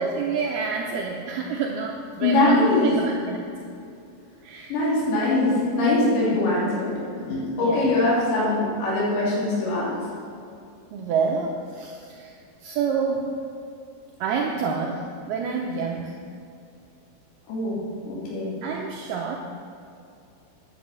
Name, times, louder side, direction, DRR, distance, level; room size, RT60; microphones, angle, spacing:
voice 1, 0.0-3.5 4.4-4.7 6.3-6.4 7.6-7.9 10.9-12.3 12.6-13.4 14.2-16.2 18.6-19.4, right 5 dB, 75° right, 0 dB, 2.4 m, -28 dB
voice 2, 2.2-2.9 4.7-10.0 17.5-17.8 18.0-18.5, left 2 dB, 75° left, -7 dB, 5.2 m, -22 dB
9.7 x 9.3 x 7.6 m, 2.5 s
omnidirectional pair, 5.1 m